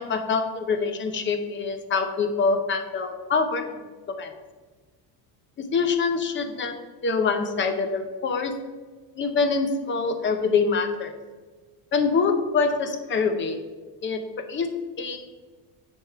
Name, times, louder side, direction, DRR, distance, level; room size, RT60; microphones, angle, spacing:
voice 1, 0.0-3.7 4.1-4.3 5.6-6.8 7.0-8.5 9.2-11.1 11.9-13.6 14.0-14.2 14.5-14.7 15.0-15.2, left 4 dB, 25° left, 7 dB, 0.7 m, -25 dB
9.1 x 3.6 x 5.6 m, 1.4 s
cardioid pair, 150°, 47 cm